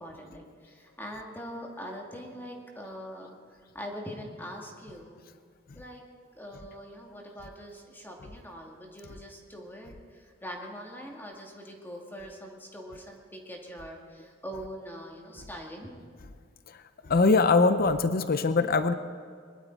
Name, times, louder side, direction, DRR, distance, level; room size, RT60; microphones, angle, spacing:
voice 1, 0.0-5.2 5.8-6.0 6.3-16.0, equal, 10° left, -1 dB, 2.1 m, -43 dB
voice 2, 17.1-18.9, left 3 dB, 50° left, 10 dB, 0.6 m, -22 dB
22.0 x 11.5 x 4.6 m, 2.1 s
head